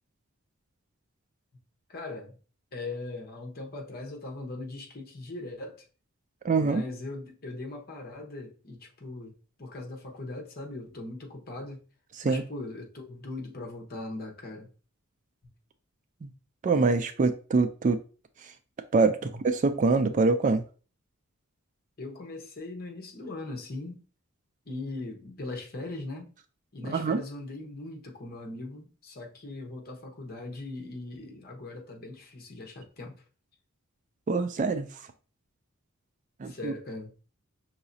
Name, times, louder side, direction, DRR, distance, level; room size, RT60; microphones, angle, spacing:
voice 1, 1.9-2.3 2.7-5.8 6.6-11.8 12.2-14.7 19.2-19.3 22.0-24.0 24.7-26.3 26.7-33.1 36.4-37.1, left 2 dB, 45° left, 1.0 m, -40 dB
voice 2, 6.4-6.8 12.2-12.4 16.2-16.3 16.6-18.0 18.4-18.5 18.9-20.6 26.8-27.2 34.3-34.9 36.4-36.7, right 4 dB, 35° right, 0.3 m, -25 dB
5.7 x 3.0 x 2.7 m
head